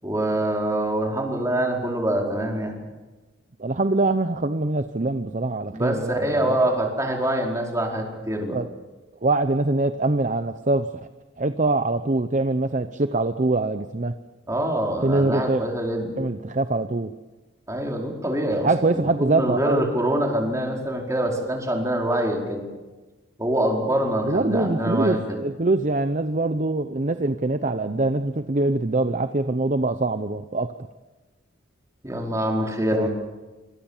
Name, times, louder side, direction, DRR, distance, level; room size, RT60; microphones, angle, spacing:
voice 1, 0.0-2.7 5.7-8.6 14.5-16.1 17.7-22.6 23.4-25.4 32.0-33.1, right 1 dB, 15° right, 0 dB, 4.8 m, -25 dB
voice 2, 3.6-6.6 8.5-8.7 9.2-10.9 11.4-14.1 15.0-15.6 16.2-17.1 18.6-19.8 24.2-30.7 32.9-33.1, right 2 dB, 40° right, 9 dB, 0.8 m, -23 dB
26.5 x 25.5 x 7.4 m, 1.2 s
head